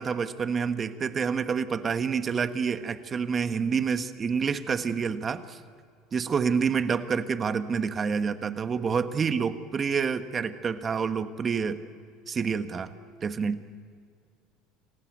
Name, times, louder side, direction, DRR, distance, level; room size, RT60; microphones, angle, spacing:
voice 1, 0.0-5.6 6.1-11.8 12.3-12.9 13.2-13.6, right 6 dB, 30° right, 10 dB, 1.4 m, -28 dB
27.0 x 15.5 x 9.3 m, 2.1 s
supercardioid pair, 100°, 0 cm